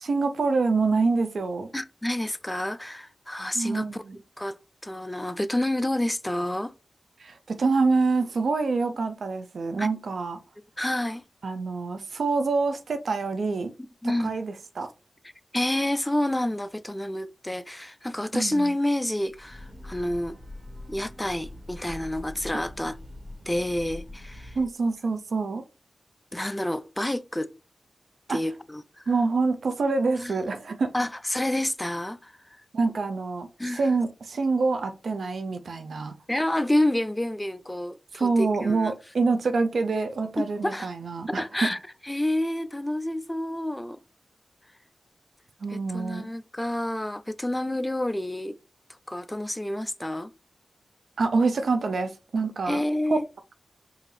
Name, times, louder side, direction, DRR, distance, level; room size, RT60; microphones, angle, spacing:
voice 1, 0.0-1.7 3.5-4.2 7.2-10.4 11.4-13.7 14.2-14.9 18.3-18.7 24.6-25.6 28.3-28.4 29.1-30.9 32.7-36.1 38.1-41.7 45.6-46.3 51.2-52.8 53.1-53.2, right 4 dB, 75° right, 0.5 m, -26 dB
voice 2, 1.7-4.0 4.4-4.6 4.8-6.7 9.8-9.9 10.8-11.2 13.8-14.3 15.5-20.4 20.9-23.0 23.5-24.6 26.3-27.5 28.3-29.0 30.2-30.3 30.9-32.4 33.6-33.9 36.3-38.9 40.4-40.9 41.3-41.8 42.0-44.0 45.7-48.6 49.1-50.3 52.7-53.3, left 1 dB, 15° left, 0.4 m, -29 dB
Breathing / Train, 19.3-24.8, left 1 dB, 30° right, 1.6 m, -43 dB
4.6 x 2.6 x 3.2 m
cardioid pair, 45°, 0 cm